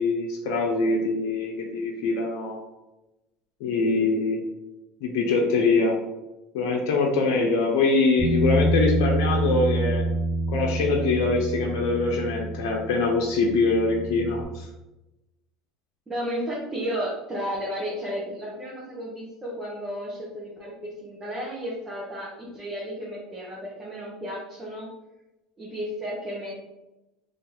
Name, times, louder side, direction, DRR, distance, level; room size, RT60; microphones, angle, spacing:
voice 1, 0.0-2.6 3.6-4.4 5.0-6.0 6.5-10.0 10.5-14.7, left 3 dB, 75° left, 0 dB, 0.6 m, -23 dB
Bass guitar, 8.2-14.4, right 1 dB, 40° right, 1.5 m, -27 dB
voice 2, 16.1-24.9 25.6-26.6, equal, 20° right, -6 dB, 1.1 m, -33 dB
3.0 x 2.8 x 3.9 m, 0.99 s
supercardioid pair, 90°, 2 cm